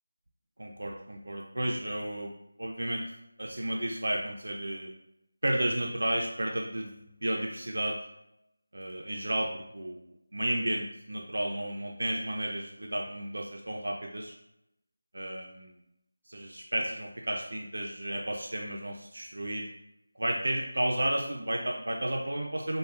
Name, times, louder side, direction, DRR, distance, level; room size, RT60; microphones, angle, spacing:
voice 1, 0.6-2.3 2.6-3.0 3.4-4.9 5.4-8.0 8.7-14.3 15.1-15.7 16.3-19.7 20.2-22.8, right 1 dB, 75° right, 0 dB, 0.4 m, -32 dB
3.2 x 2.1 x 2.4 m, 0.84 s
figure-of-eight pair, 170°, 0 cm